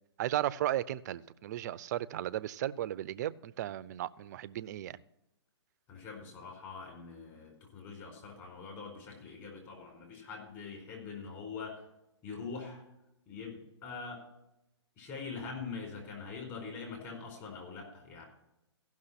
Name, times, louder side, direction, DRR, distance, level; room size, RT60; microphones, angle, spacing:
voice 1, 0.2-5.0, right 13 dB, 40° right, 17 dB, 0.4 m, -35 dB
voice 2, 5.9-11.8 12.2-12.8 13.3-14.2 15.0-18.2, left 5 dB, 30° left, 1 dB, 4.7 m, -43 dB
15.5 x 6.2 x 5.7 m, 0.88 s
hypercardioid pair, 135°, 15 cm